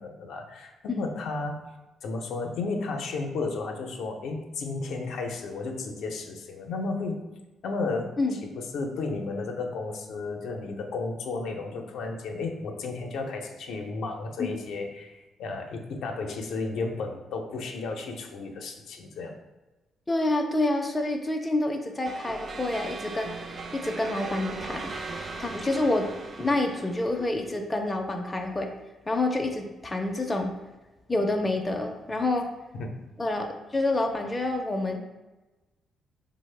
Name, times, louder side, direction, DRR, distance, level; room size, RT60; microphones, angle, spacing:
voice 1, 0.0-1.6 2.0-7.2 7.6-8.2 8.4-19.3 32.7-32.9, left 3 dB, 75° left, 3 dB, 0.5 m, -33 dB
voice 2, 20.1-26.1 26.4-28.7 29.1-30.5 31.1-32.5 33.2-35.0, left 2 dB, 15° left, 3 dB, 0.4 m, -28 dB
sound 1, 22.1-27.5, right 3 dB, 45° right, 0.4 m, -39 dB
4.2 x 2.0 x 3.2 m, 1.1 s
cardioid pair, 90°, 0 cm